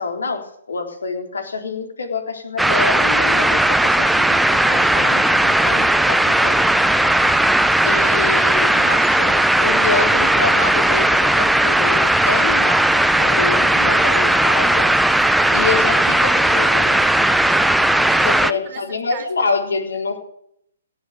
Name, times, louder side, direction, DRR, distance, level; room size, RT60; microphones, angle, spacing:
voice 1, 0.0-6.7 7.8-14.9 15.5-17.0 18.2-20.2, left 4 dB, 80° left, 4 dB, 3.8 m, -27 dB
sound 1, 2.6-18.5, right 1 dB, ahead, 0.5 m, -16 dB
voice 2, 15.1-15.8 17.9-19.5, right 9 dB, 30° right, 6 dB, 2.3 m, -38 dB
17.5 x 7.5 x 9.4 m, 0.70 s
hypercardioid pair, 135°, 0 cm